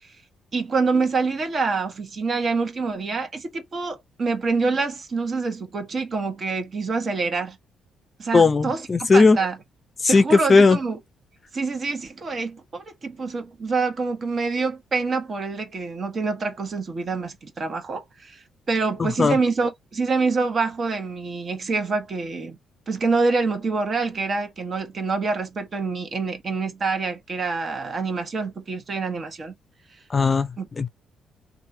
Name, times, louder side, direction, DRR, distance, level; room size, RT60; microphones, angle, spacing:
voice 1, 0.5-7.6 8.2-9.6 10.1-11.0 11.5-22.6 22.9-29.5 30.6-30.7, right 4 dB, 45° right, 1.2 m, -26 dB
voice 2, 8.3-9.4 10.0-10.8 19.0-19.4 30.1-30.5 30.8-30.9, left 4 dB, 35° left, 0.5 m, -17 dB
3.0 x 2.5 x 2.7 m
cardioid pair, 90°, 0 cm